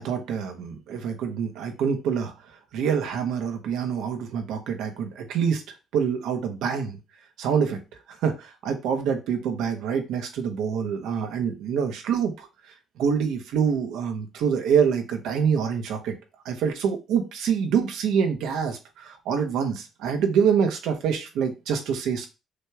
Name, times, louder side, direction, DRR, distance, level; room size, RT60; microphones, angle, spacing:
voice 1, 0.0-2.3 2.7-5.6 5.9-7.0 7.4-7.8 8.2-12.5 13.0-16.1 16.4-22.3, right 7 dB, 90° right, 5 dB, 0.9 m, -26 dB
6.3 x 3.0 x 2.4 m, 0.28 s
cardioid pair, 180°, 0 cm